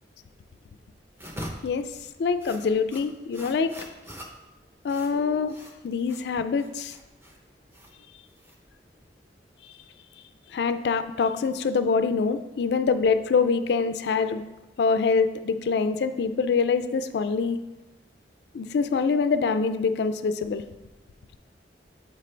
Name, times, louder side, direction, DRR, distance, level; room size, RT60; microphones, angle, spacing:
sound 1, 1.1-9.0, equal, 15° right, 0.7 m, -44 dB
voice 1, 2.2-3.7 4.8-5.6 5.8-6.9 10.5-14.4 14.8-17.6 18.5-20.6, left 5 dB, 65° left, 11 dB, 0.3 m, -25 dB
7.3 x 5.0 x 3.3 m, 1.0 s
head